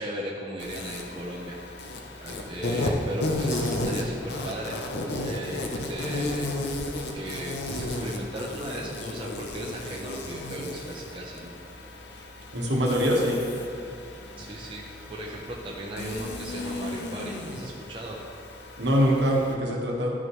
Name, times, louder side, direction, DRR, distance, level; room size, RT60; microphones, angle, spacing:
voice 1, 0.0-1.9 2.2-4.8 5.2-6.6 7.1-11.6 14.4-18.2, right 1 dB, 25° right, -3 dB, 0.7 m, -37 dB
Insect, 0.6-19.5, left 1 dB, 65° left, 0.8 m, -34 dB
voice 2, 12.5-13.4 18.8-20.1, equal, 70° right, -2 dB, 1.5 m, -23 dB
12.0 x 6.1 x 3.2 m, 2.5 s
head